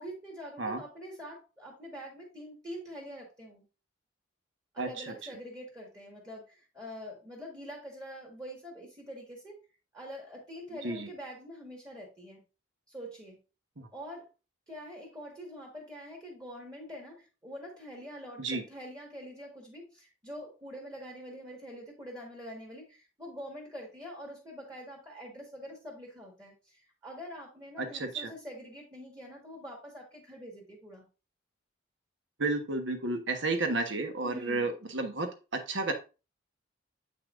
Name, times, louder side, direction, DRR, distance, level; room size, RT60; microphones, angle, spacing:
voice 1, 0.0-3.6 4.7-9.6 9.9-12.4 12.9-13.4 13.9-14.3 14.7-31.0 34.2-34.7, equal, 20° right, -2 dB, 1.7 m, -45 dB
voice 2, 4.8-5.1 10.8-11.1 13.8-13.9 18.4-18.6 27.8-28.3 32.4-35.9, right 2 dB, 70° right, 5 dB, 1.2 m, -32 dB
7.9 x 5.5 x 2.5 m, 0.31 s
head